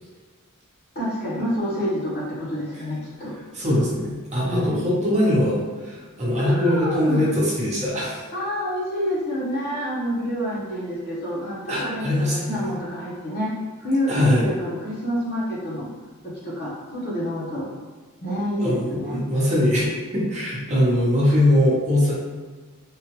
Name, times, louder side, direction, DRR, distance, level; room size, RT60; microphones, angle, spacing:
voice 1, 0.9-3.3 4.4-4.9 6.4-7.3 8.3-13.5 13.8-15.9 16.4-17.7 18.2-19.2, equal, 50° left, -6 dB, 1.0 m, -28 dB
voice 2, 3.5-8.2 11.7-12.6 14.1-14.5 18.6-19.8 20.1-22.2, left 1 dB, 30° right, -6 dB, 0.9 m, -21 dB
3.6 x 2.4 x 2.9 m, 1.4 s
head